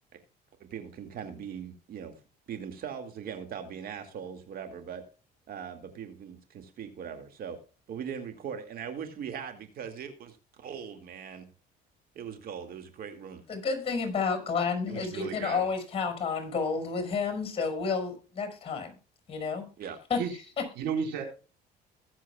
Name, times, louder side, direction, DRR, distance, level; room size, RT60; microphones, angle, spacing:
voice 1, 0.6-2.2 2.5-5.0 5.5-7.6 7.9-11.5 12.1-13.4 19.8-20.0, right 7 dB, 60° right, 7 dB, 2.2 m, -40 dB
voice 2, 13.5-18.9 19.3-19.7 20.1-20.2 20.6-20.7, left 5 dB, 35° left, 7 dB, 5.6 m, -30 dB
voice 3, 14.9-15.6 20.2-20.3 20.8-21.2, right 7 dB, 85° right, 3 dB, 4.5 m, -33 dB
22.0 x 7.4 x 2.3 m, 0.34 s
cardioid pair, 110°, 17 cm